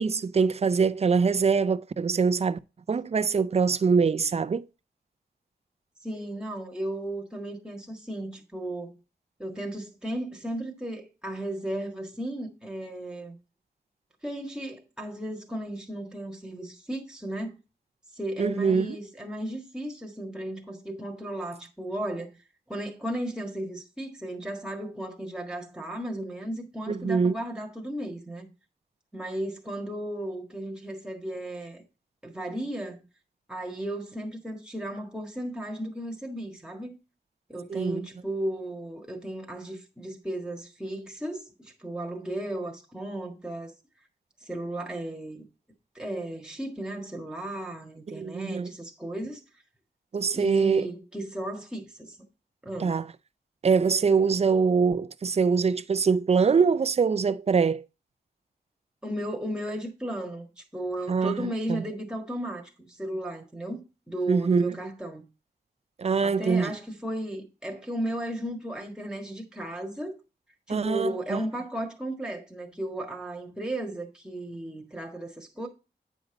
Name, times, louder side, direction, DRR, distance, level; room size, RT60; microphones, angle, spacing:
voice 1, 0.0-2.6 2.9-4.7 18.4-19.0 26.9-27.4 37.7-38.1 48.1-48.7 50.1-50.9 52.8-53.1 53.6-57.8 61.1-61.8 64.3-64.8 66.0-66.7 70.7-71.4, right 5 dB, 40° right, 0.4 m, -24 dB
voice 2, 6.0-9.0 9.4-13.4 14.2-17.5 18.1-22.3 22.7-28.4 29.1-31.8 32.2-33.0 33.5-37.0 37.5-43.7 44.4-45.4 45.9-49.4 50.3-52.2 52.6-53.0 59.0-65.3 66.2-70.2 70.7-75.7, right 1 dB, 5° right, 1.6 m, -35 dB
9.3 x 5.3 x 3.9 m
wide cardioid pair, 170°, 17 cm